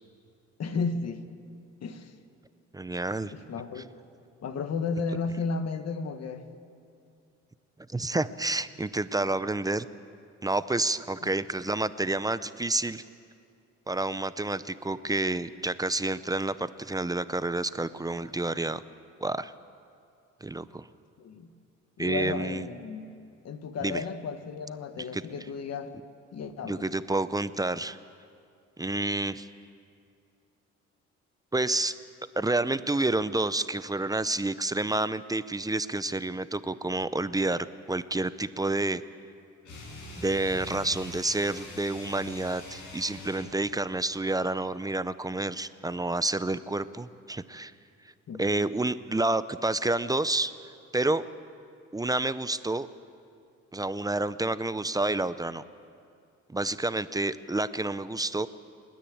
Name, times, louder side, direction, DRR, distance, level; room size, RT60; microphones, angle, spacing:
voice 1, 0.6-1.2 1.8-2.1 3.3-4.0 4.4-6.4 11.2-11.3 21.2-21.5 22.0-23.1 23.4-25.9 26.3-26.9 48.3-48.4, left 4 dB, 55° left, 9 dB, 1.6 m, -33 dB
voice 2, 2.7-3.3 7.9-9.9 10.4-13.0 13.9-18.8 19.2-19.5 20.4-20.9 22.0-22.7 23.8-24.0 25.1-25.2 26.6-28.0 28.8-29.5 31.5-32.0 32.4-39.0 40.2-47.7 48.4-50.5 50.9-51.2 51.9-52.9 53.7-55.6 56.5-58.5, right 2 dB, 10° right, 14 dB, 0.6 m, -29 dB
sound 1, 39.6-43.6, left 2 dB, 80° left, 6.6 m, -43 dB
30.0 x 10.5 x 8.7 m, 2.4 s
cardioid pair, 90°, 30 cm